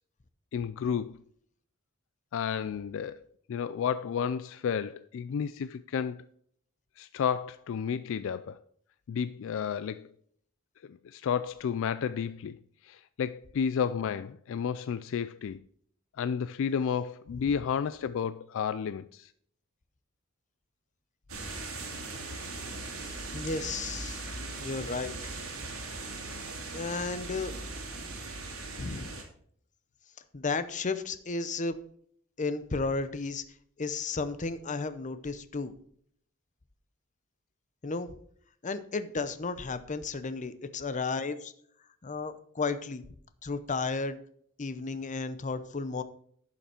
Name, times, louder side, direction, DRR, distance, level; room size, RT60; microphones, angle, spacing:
voice 1, 0.5-1.2 2.3-3.2 3.5-6.3 7.0-8.6 9.1-10.1 10.9-12.6 12.8-15.6 16.2-19.3, left 7 dB, 65° left, 0.3 m, -32 dB
sound 1, 21.3-29.2, right 3 dB, 90° right, 2.1 m, -39 dB
voice 2, 23.0-24.2 24.6-25.1 26.7-27.5 28.7-29.2 30.3-31.8 32.4-33.4 33.8-35.7 37.8-38.1 38.6-41.5 42.0-43.0 43.4-44.2 44.6-46.0, left 4 dB, 35° left, 0.7 m, -33 dB
11.0 x 5.7 x 4.4 m
head